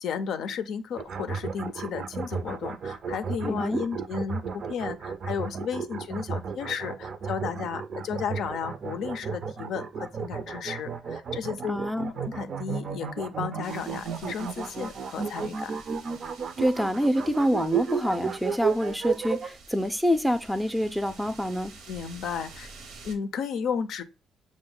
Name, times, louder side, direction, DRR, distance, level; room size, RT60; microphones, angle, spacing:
voice 1, 0.0-11.8 12.1-15.8 21.9-22.7 23.0-24.0, left 7 dB, 75° left, 0.4 m, -33 dB
sound 1, 1.0-19.5, right 6 dB, 55° right, 0.4 m, -33 dB
voice 2, 3.4-3.8 11.7-12.1 16.6-21.7, equal, ahead, 0.4 m, -26 dB
sound 2, 13.6-23.2, right 4 dB, 85° right, 0.8 m, -49 dB
5.9 x 2.1 x 3.7 m
cardioid pair, 90°, 0 cm